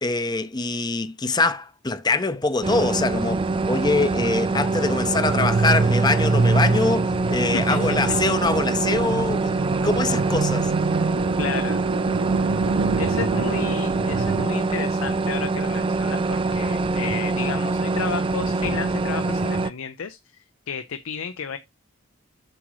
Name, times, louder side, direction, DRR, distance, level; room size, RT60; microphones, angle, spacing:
voice 1, 0.0-10.7, left 3 dB, 20° left, 0.6 m, -24 dB
sound 1, 2.6-19.7, right 3 dB, 25° right, 0.4 m, -24 dB
sound 2, 4.5-14.5, right 4 dB, 85° right, 0.5 m, -26 dB
voice 2, 7.5-8.2 11.4-11.8 13.0-20.4 20.7-21.6, left 6 dB, 80° left, 0.6 m, -32 dB
7.7 x 6.0 x 3.1 m
head